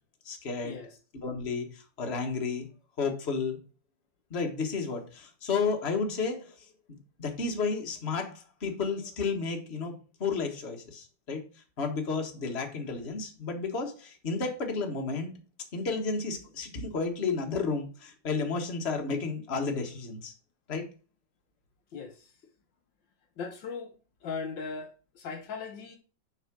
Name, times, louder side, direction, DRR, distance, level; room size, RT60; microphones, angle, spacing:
voice 1, 0.2-0.8 1.2-2.7 3.0-3.6 4.3-6.5 7.2-9.9 10.2-11.4 11.8-15.3 15.7-20.3 20.7-20.8, left 4 dB, 35° left, 1.7 m, -32 dB
voice 2, 23.4-23.9 24.2-24.9 25.2-26.0, left 5 dB, 70° left, 1.7 m, -38 dB
6.6 x 5.7 x 6.1 m
omnidirectional pair, 2.2 m